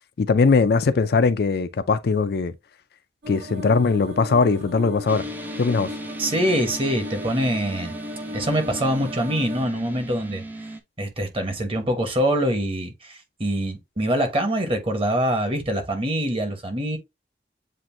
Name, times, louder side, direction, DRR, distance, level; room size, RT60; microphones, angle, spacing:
voice 1, 0.2-2.5 3.3-5.2 5.6-5.9, left 4 dB, 60° left, 0.4 m, -20 dB
sound 1, 3.2-9.6, left 2 dB, 85° right, 2.3 m, -36 dB
sound 2, 5.1-10.8, right 2 dB, 10° right, 0.5 m, -37 dB
voice 2, 6.2-7.9 8.3-10.4 11.0-17.0, equal, 30° right, 1.0 m, -24 dB
7.5 x 2.6 x 2.6 m
head